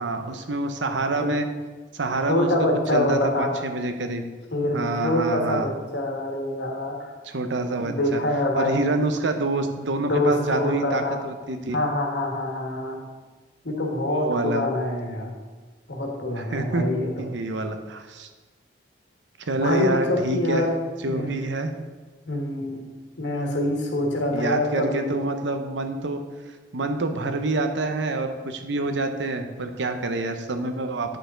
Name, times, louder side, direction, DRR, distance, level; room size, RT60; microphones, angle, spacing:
voice 1, 0.0-1.5 1.9-2.5 2.9-4.2 4.7-5.7 7.2-8.2 8.6-11.8 14.1-14.6 16.4-16.8 17.2-18.3 19.4-20.7 21.0-21.7 24.3-26.2 26.7-31.2, right 2 dB, 80° right, 7 dB, 0.8 m, -27 dB
voice 2, 2.3-3.6 4.5-7.1 7.8-8.9 10.0-11.2 11.7-13.0 13.6-15.3 15.9-17.3 19.6-20.8 21.1-21.3 22.3-22.8 23.2-25.2, left 1 dB, 75° left, 0 dB, 1.6 m, -25 dB
9.1 x 6.7 x 3.9 m, 1.3 s
head